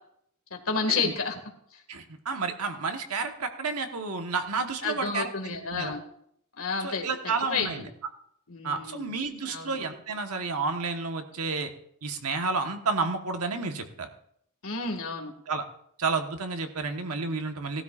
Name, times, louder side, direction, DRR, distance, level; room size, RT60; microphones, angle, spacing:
voice 1, 0.5-1.4 1.7-1.8 4.8-6.0 6.6-7.1 7.5-7.8 8.5-9.1 9.4-9.8 14.6-15.3, left 4 dB, 65° left, 3 dB, 2.0 m, -30 dB
voice 2, 1.9-5.3 5.7-5.9 6.8-7.9 8.6-11.7 12.0-14.1 15.5-15.6 16.0-17.8, right 4 dB, 90° right, 5 dB, 1.3 m, -31 dB
18.0 x 12.5 x 2.5 m, 0.69 s
head